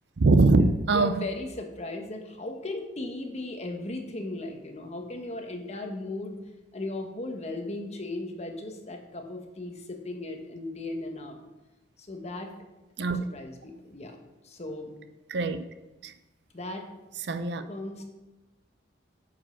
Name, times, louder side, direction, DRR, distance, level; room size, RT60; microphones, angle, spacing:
voice 1, 0.2-1.2 13.0-13.2 15.3-15.6 16.0-16.1 17.2-17.7, right 3 dB, 65° right, 0.6 m, -22 dB
voice 2, 0.9-6.4 6.7-11.4 12.0-12.5 13.3-14.2 14.4-14.9 16.5-16.9 17.7-18.0, left 2 dB, 40° left, 1.2 m, -36 dB
8.8 x 5.2 x 5.7 m
head